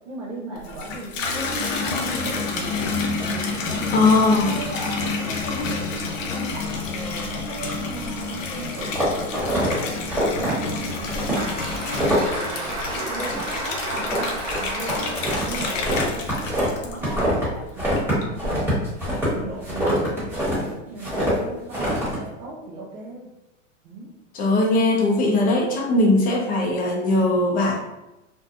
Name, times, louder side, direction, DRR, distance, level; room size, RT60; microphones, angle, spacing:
voice 1, 0.1-4.1 4.5-11.6 12.0-18.8 19.2-20.2 20.5-23.3 23.8-24.1, right 2 dB, 80° right, -5 dB, 0.7 m, -37 dB
Water tap faucet / Bathtub (filling or washing), 0.6-17.5 18.0-18.5, left 4 dB, 85° left, 0.6 m, -29 dB
voice 2, 3.9-4.5 24.3-27.8, left 2 dB, 25° left, -1 dB, 0.5 m, -19 dB
sound 1, 8.8-9.7 10.1-10.5 11.1-11.4 11.7-12.3 12.6-12.9 13.2-13.6 13.9-17.5 17.8-20.6 21.0-21.3 21.7-22.2, equal, 5° right, 1.2 m, -25 dB
Applause, 10.9-17.2, right 1 dB, 50° right, 1.3 m, -33 dB
2.6 x 2.2 x 2.4 m, 0.97 s
hypercardioid pair, 130°, 37 cm